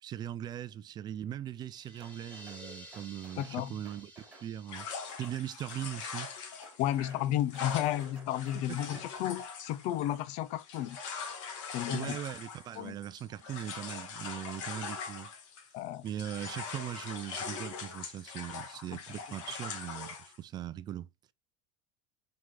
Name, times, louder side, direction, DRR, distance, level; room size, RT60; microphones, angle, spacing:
voice 1, 0.0-4.9 5.2-6.3 8.5-9.0 11.9-15.3 16.0-21.1, right 11 dB, 25° right, 0.5 m, -40 dB
sound 1, 1.5-7.2, equal, 10° left, 3.8 m, -54 dB
sound 2, 2.0-2.6 2.9-3.6 3.8-4.5 4.8-5.4 5.7-6.3 6.6-7.3 7.5-9.1, right 2 dB, 10° right, 3.1 m, -56 dB
voice 2, 3.4-3.7 6.8-11.0 11.7-12.2 12.8-13.0 15.7-16.0, left 12 dB, 45° left, 0.5 m, -32 dB
sound 3, 4.7-15.8 16.1-20.4, left 6 dB, 80° left, 2.1 m, -42 dB
6.2 x 4.8 x 3.7 m
supercardioid pair, 160°, 16 cm